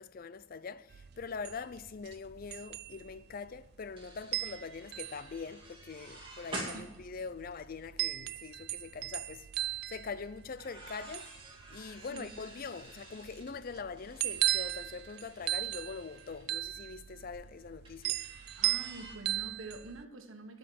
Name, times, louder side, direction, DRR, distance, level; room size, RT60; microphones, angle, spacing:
voice 1, 0.0-11.4 11.7-18.2, left 5 dB, 45° left, 0.4 m, -43 dB
sound 1, 0.9-20.0, right 15 dB, 50° right, 0.3 m, -37 dB
sound 2, 3.1-3.2 3.4-8.1 8.5-8.8 10.4-16.5 17.8-19.1, right 2 dB, 25° right, 2.2 m, -49 dB
voice 2, 18.6-20.6, right 2 dB, 75° right, 1.4 m, -46 dB
12.0 x 5.3 x 8.6 m
head